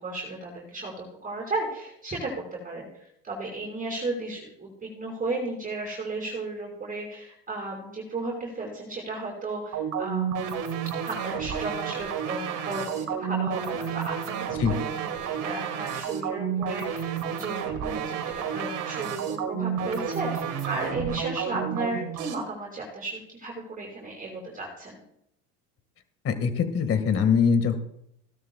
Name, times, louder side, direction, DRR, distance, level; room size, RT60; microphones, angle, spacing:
voice 1, 0.0-2.3 2.6-10.4 11.0-25.0, right 2 dB, 20° right, -3 dB, 5.0 m, -34 dB
sound 1, 9.7-22.3, right 7 dB, 55° right, 2.4 m, -31 dB
voice 2, 26.2-27.8, left 6 dB, 40° left, 9 dB, 1.9 m, -23 dB
17.0 x 12.5 x 2.3 m, 0.75 s
supercardioid pair, 105°, 37 cm